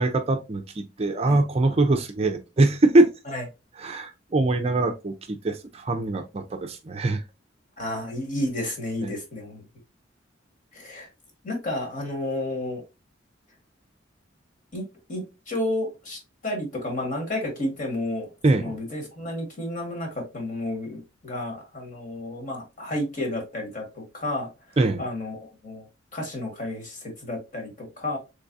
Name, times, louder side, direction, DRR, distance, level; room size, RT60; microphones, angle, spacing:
voice 1, 0.0-3.1 3.8-7.2 9.0-9.1 18.4-18.8 24.8-25.0, right 2 dB, 30° right, 0.4 m, -23 dB
voice 2, 7.8-9.6 10.7-11.1 11.4-12.8 14.7-24.5 25.0-25.8 26.1-28.2, left 1 dB, 40° left, 1.4 m, -31 dB
3.6 x 3.2 x 2.6 m
head